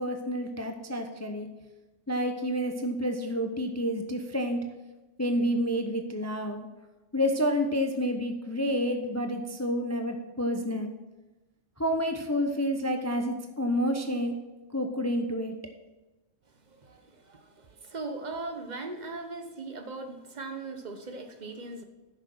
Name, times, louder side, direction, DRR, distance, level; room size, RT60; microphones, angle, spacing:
voice 1, 0.0-1.5 2.1-4.6 5.2-6.7 7.1-10.9 11.8-14.3 14.7-15.5, equal, 20° left, 5 dB, 0.5 m, -29 dB
voice 2, 16.7-21.8, right 3 dB, 35° right, 6 dB, 1.0 m, -39 dB
10.0 x 6.6 x 6.1 m, 1.1 s
omnidirectional pair, 1.4 m